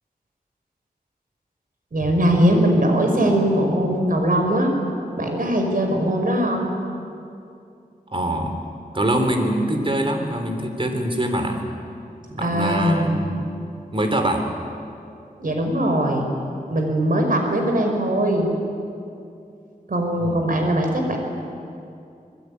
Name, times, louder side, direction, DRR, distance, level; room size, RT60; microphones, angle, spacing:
voice 1, 1.9-4.7 5.2-6.7 12.4-13.2 15.4-16.3 16.7-18.5 19.9-21.2, right 1 dB, 60° right, 3 dB, 5.3 m, -20 dB
voice 2, 8.1-8.6 8.9-11.6 12.3-13.4 13.9-14.4 20.2-20.5, right 1 dB, 35° right, 5 dB, 3.6 m, -23 dB
25.5 x 20.5 x 9.7 m, 2.6 s
wide cardioid pair, 95°, 16 cm